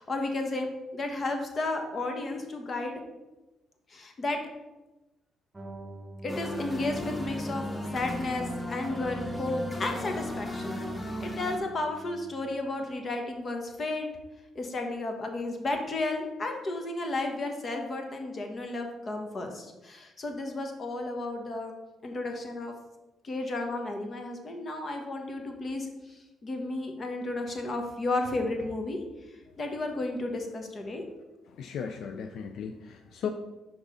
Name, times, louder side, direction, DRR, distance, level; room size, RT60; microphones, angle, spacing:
voice 1, 0.0-3.0 3.9-4.4 6.2-7.7 7.9-14.1 14.5-21.7 22.0-22.7 23.2-29.0 29.6-31.0, left 2 dB, 40° left, 4 dB, 1.2 m, -33 dB
sound 1, 5.5-12.6, right 1 dB, 20° right, 0.8 m, -43 dB
sound 2, 6.3-11.6, left 1 dB, 20° left, 0.9 m, -36 dB
voice 2, 31.5-33.3, left 7 dB, 75° left, 6 dB, 0.4 m, -36 dB
5.3 x 4.8 x 5.0 m, 1.1 s
cardioid pair, 90°, 0 cm